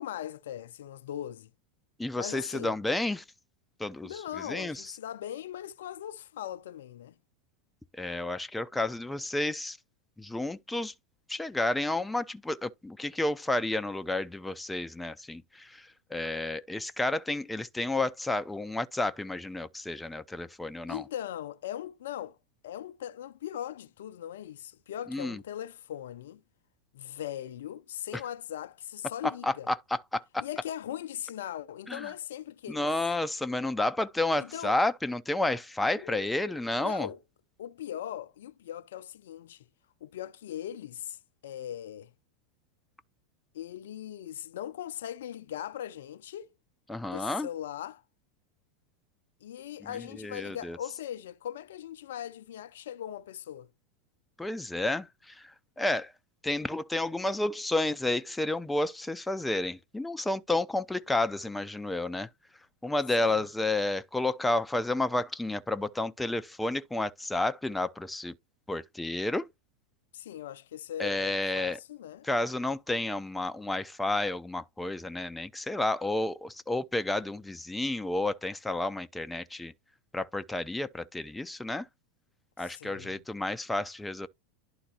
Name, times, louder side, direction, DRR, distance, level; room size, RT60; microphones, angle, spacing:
voice 1, 0.0-1.5 2.1-2.7 4.0-7.1 20.9-22.4 22.6-26.4 26.9-29.7 30.4-32.9 34.4-34.8 36.0-37.2 37.6-39.6 40.0-41.2 41.4-42.1 43.5-46.5 47.0-48.0 49.4-53.7 63.2-63.4 70.1-72.3 82.6-83.2, left 11 dB, 75° left, 0.5 m, -39 dB
voice 2, 2.0-3.2 3.8-4.1 4.4-4.9 7.9-9.8 10.2-10.9 11.3-21.0 25.1-25.4 28.1-28.2 29.4-30.4 31.9-32.1 32.7-37.1 46.9-47.5 49.9-50.8 54.4-56.1 56.4-62.3 62.8-68.3 68.7-69.5 71.0-71.8 72.2-79.7 80.1-81.9 82.6-84.3, left 2 dB, 5° left, 0.5 m, -31 dB
11.5 x 3.9 x 2.8 m
hypercardioid pair, 95°, 0 cm